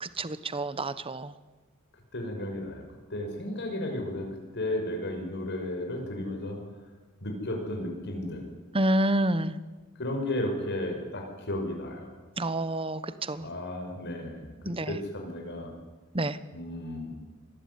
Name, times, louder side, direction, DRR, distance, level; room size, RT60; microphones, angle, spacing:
voice 1, 0.0-1.3 8.7-9.5 12.4-13.0 13.3-13.5 14.6-15.0 16.1-16.4, right 1 dB, 25° right, 14 dB, 1.1 m, -28 dB
voice 2, 2.1-2.8 3.1-4.3 4.5-6.6 7.2-8.5 10.0-12.1 13.4-14.5 14.9-15.7 16.5-17.1, left 1 dB, 55° left, 2 dB, 5.7 m, -33 dB
26.0 x 20.5 x 9.6 m, 1.3 s
head